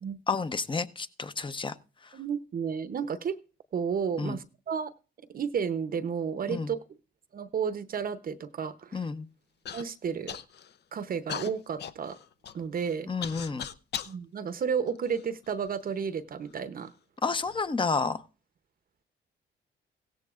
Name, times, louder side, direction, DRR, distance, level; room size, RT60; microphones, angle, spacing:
voice 1, 0.3-1.8 2.0-2.2 4.2-4.4 6.5-6.7 8.9-9.3 13.1-13.7 17.2-18.2, left 4 dB, 25° left, 12 dB, 0.7 m, -30 dB
voice 2, 2.1-3.4 3.7-4.9 5.3-6.8 7.3-9.0 9.7-10.4 10.9-12.2 12.5-13.1 14.1-16.9, right 7 dB, 45° right, 12 dB, 0.7 m, -32 dB
Human voice / Cough, 9.7-9.8 10.3-10.8 11.3-14.2 14.9-15.7 16.5-16.6 17.3-17.6, left 8 dB, 55° left, 0.6 m, -39 dB
16.5 x 14.0 x 2.4 m, 0.34 s
cardioid pair, 90°, 20 cm